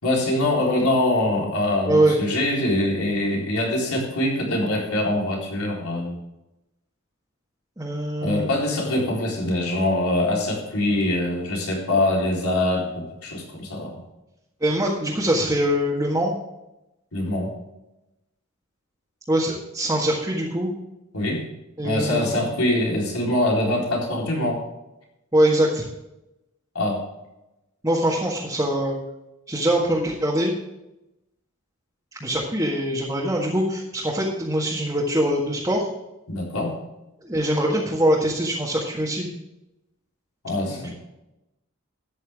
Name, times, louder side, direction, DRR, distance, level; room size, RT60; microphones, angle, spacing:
voice 1, 0.0-6.2 8.2-14.0 17.1-17.5 21.1-21.4 21.8-24.6 26.7-27.0 36.3-36.7 40.4-40.9, left 1 dB, 85° left, -2 dB, 4.1 m, -23 dB
voice 2, 1.9-2.2 7.8-8.5 14.6-16.3 19.3-20.7 21.8-22.5 25.3-25.8 27.8-29.0 29.5-30.5 32.2-35.9 37.2-39.3 40.7-40.9, right 1 dB, 15° right, -4 dB, 1.7 m, -23 dB
13.0 x 9.8 x 3.6 m, 0.92 s
head